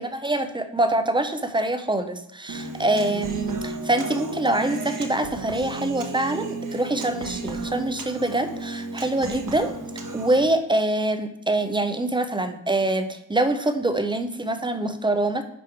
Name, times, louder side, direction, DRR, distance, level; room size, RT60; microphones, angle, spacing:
voice 1, 0.0-9.7 10.1-15.4, right 2 dB, 10° right, 9 dB, 0.4 m, -25 dB
Human voice, 2.5-10.5, right 2 dB, 45° right, 1.0 m, -34 dB
10.0 x 3.5 x 4.3 m, 0.80 s
wide cardioid pair, 165°, 44 cm